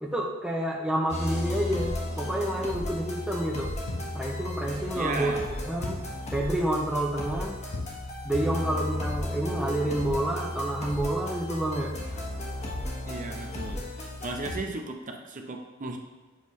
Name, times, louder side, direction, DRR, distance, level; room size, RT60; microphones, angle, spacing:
voice 1, 0.0-3.7 4.1-5.4 5.6-6.0 6.3-7.6 8.2-11.9, right 1 dB, 5° right, -1 dB, 0.6 m, -29 dB
sound 1, 1.1-14.6, left 1 dB, 30° left, 1.2 m, -34 dB
sound 2, 3.9-4.3 5.8-6.2 7.7-8.1, left 2 dB, 80° left, 1.0 m, -36 dB
voice 2, 4.9-5.4 13.1-13.8 14.2-16.0, right 2 dB, 35° right, 3 dB, 0.7 m, -35 dB
7.3 x 5.8 x 3.1 m, 1.3 s
head